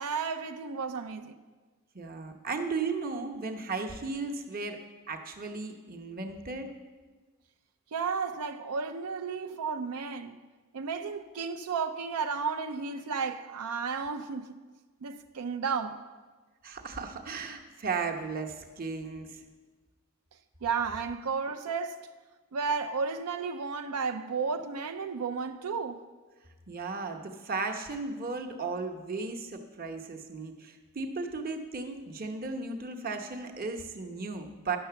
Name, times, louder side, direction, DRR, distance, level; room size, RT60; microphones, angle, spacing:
voice 1, 0.0-1.4 7.9-10.3 10.7-14.5 15.0-16.0 20.6-22.0 22.5-26.0, right 5 dB, 90° right, 0.5 m, -33 dB
voice 2, 1.9-4.8 5.1-6.7 16.6-19.4 26.7-34.8, right 4 dB, 40° right, 0.9 m, -35 dB
10.0 x 6.6 x 6.8 m
head